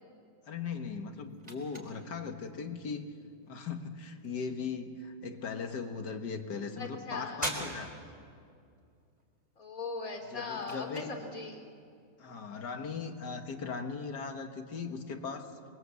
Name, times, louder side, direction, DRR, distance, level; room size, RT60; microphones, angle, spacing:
voice 1, 0.5-3.0 3.5-7.9 10.3-11.2 12.2-15.5, left 5 dB, 65° left, 6 dB, 2.1 m, -38 dB
sound 1, 0.6-15.1, right 1 dB, 20° right, 5.0 m, -48 dB
voice 2, 6.8-7.5 9.6-11.6, left 4 dB, 50° left, 3 dB, 3.3 m, -39 dB
27.0 x 22.0 x 8.2 m, 2.4 s
omnidirectional pair, 1.9 m